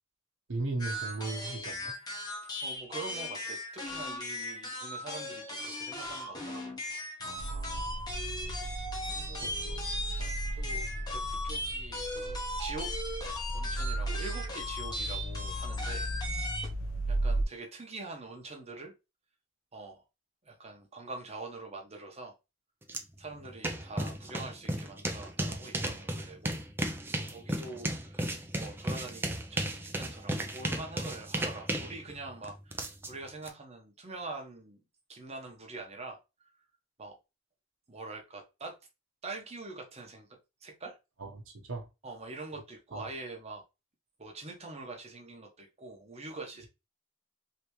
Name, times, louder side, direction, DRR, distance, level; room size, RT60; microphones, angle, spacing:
voice 1, 0.5-1.9 7.2-7.9 9.4-9.8 10.2-10.4 27.3-27.4 41.2-41.3 41.7-41.9 42.9-43.1, right 2 dB, 70° right, 0.9 m, -37 dB
sound 1, 0.8-16.7, left 1 dB, 20° left, 0.9 m, -38 dB
voice 2, 2.4-6.7 8.5-8.7 9.1-10.8 11.1-12.9 13.5-16.1 17.1-18.9 19.7-20.0 20.5-22.3 23.2-26.6 27.3-34.8 35.1-36.5 37.0-37.2 37.9-38.8 39.2-40.3 40.6-41.0 42.0-43.6 44.2-46.7, right 3 dB, 30° right, 0.8 m, -44 dB
sound 2, 7.4-17.5, right 1 dB, 65° left, 0.6 m, -36 dB
sound 3, 22.9-23.0 23.3-33.5, right 1 dB, 10° right, 0.4 m, -35 dB
3.3 x 2.8 x 3.0 m
head